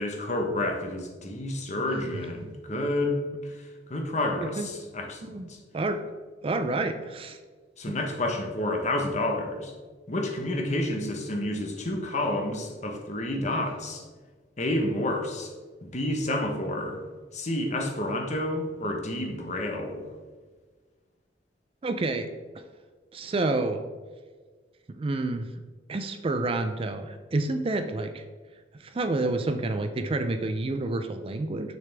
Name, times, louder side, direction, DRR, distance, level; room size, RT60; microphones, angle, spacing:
voice 1, 0.0-3.2 3.9-5.4 7.8-9.7 10.1-14.0 14.6-15.5 15.8-17.0 17.3-20.0, left 1 dB, 40° left, 2 dB, 1.0 m, -29 dB
voice 2, 6.4-7.4 7.9-8.0 21.8-22.3 23.1-23.8 25.0-25.5 25.9-28.2 28.8-31.8, right 2 dB, 30° right, 8 dB, 0.4 m, -29 dB
6.7 x 6.6 x 3.4 m, 1.4 s
head